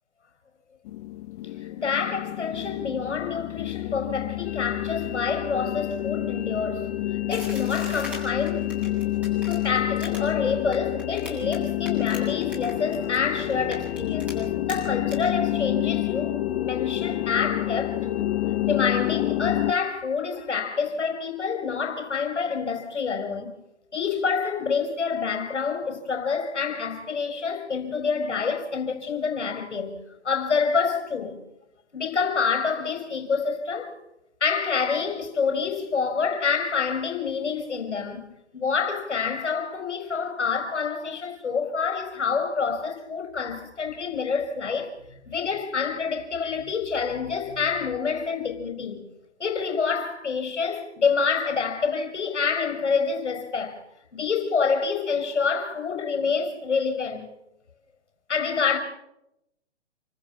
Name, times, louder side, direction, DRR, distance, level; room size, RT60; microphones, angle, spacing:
sound 1, 0.9-19.7, left 16 dB, 35° left, 1.3 m, -29 dB
voice 1, 1.6-6.9 7.3-8.7 9.5-18.2 18.7-23.6 23.9-30.0 30.2-31.4 31.9-34.0 34.4-38.3 38.5-44.9 45.3-49.0 49.4-53.8 54.1-57.3 58.3-58.8, left 5 dB, 80° left, 5.3 m, -27 dB
sound 2, 4.4-19.9, left 8 dB, 65° left, 4.0 m, -36 dB
sound 3, 7.3-11.6 11.8-13.2 13.5-14.3 14.7-14.8 15.1-15.2, left 1 dB, 5° right, 7.8 m, -40 dB
29.0 x 14.5 x 7.3 m
hypercardioid pair, 135°, 35 cm